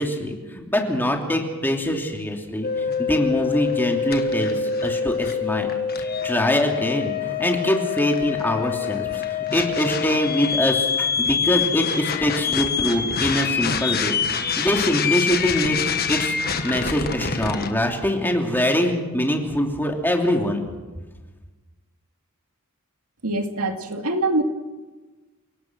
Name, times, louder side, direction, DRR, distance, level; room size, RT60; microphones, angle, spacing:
voice 1, 0.0-5.7 6.2-14.2 14.4-15.8 16.1-16.3 16.6-20.6, equal, 10° left, 2 dB, 2.9 m, -23 dB
sound 1, 2.6-17.7, left 6 dB, 45° left, 1.7 m, -25 dB
voice 2, 23.2-24.4, right 2 dB, 85° right, 5 dB, 2.4 m, -24 dB
29.0 x 18.0 x 6.2 m, 1.2 s
head